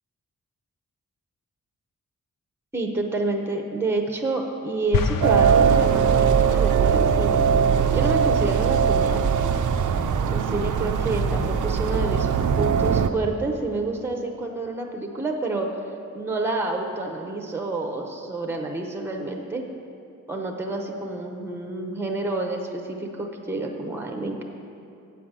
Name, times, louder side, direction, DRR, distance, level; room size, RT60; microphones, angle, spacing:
voice 1, 2.7-7.4 7.9-9.5 10.3-12.3 12.6-15.7 16.1-19.6 20.3-24.4, right 2 dB, 5° right, 2 dB, 0.6 m, -28 dB
sound 1, 4.9-6.6, left 6 dB, 85° left, 0.5 m, -27 dB
sound 2, 5.2-13.1, right 7 dB, 65° right, 0.5 m, -20 dB
8.1 x 5.0 x 7.3 m, 2.7 s
wide cardioid pair, 145°, 33 cm